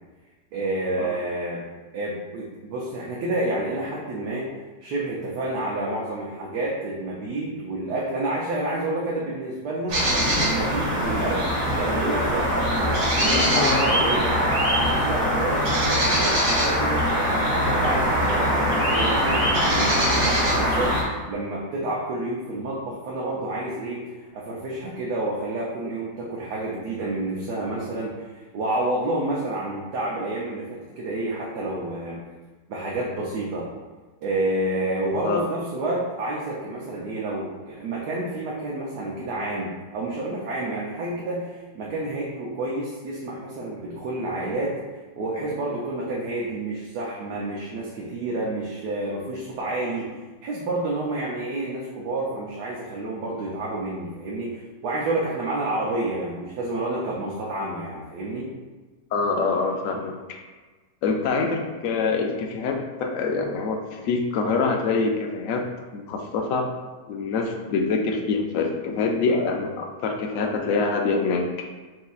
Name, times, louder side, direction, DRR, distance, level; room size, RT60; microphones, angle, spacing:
voice 1, 0.5-1.6 1.9-4.5 4.8-10.0 10.3-11.5 11.7-14.3 14.8-32.2 32.7-33.7 34.2-44.7 45.2-50.1 50.4-58.5, right 2 dB, 75° right, -4 dB, 1.2 m, -29 dB
sound 1, 9.9-21.0, equal, 55° right, 1.3 m, -22 dB
voice 2, 13.1-14.0 35.2-35.4 59.1-60.4 61.0-65.7 65.9-66.7 67.1-71.4, left 4 dB, 75° left, 2 dB, 0.7 m, -25 dB
6.1 x 2.8 x 2.4 m, 1.3 s
omnidirectional pair, 1.9 m